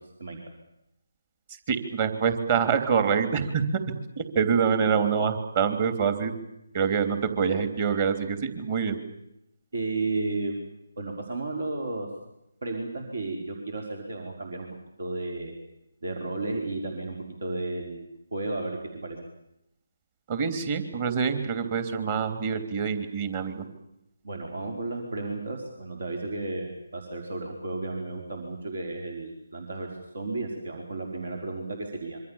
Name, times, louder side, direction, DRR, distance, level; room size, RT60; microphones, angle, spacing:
voice 1, 1.7-3.6 4.2-6.3 6.7-9.0 20.3-23.6, right 6 dB, 30° right, 8 dB, 3.3 m, -25 dB
voice 2, 9.7-10.6 11.0-12.1 12.6-14.7 15.0-15.5 16.0-19.2 24.2-29.9 30.1-32.2, right 2 dB, 65° right, 2 dB, 4.9 m, -33 dB
26.5 x 24.0 x 7.3 m, 0.84 s
figure-of-eight pair, 150°, 0 cm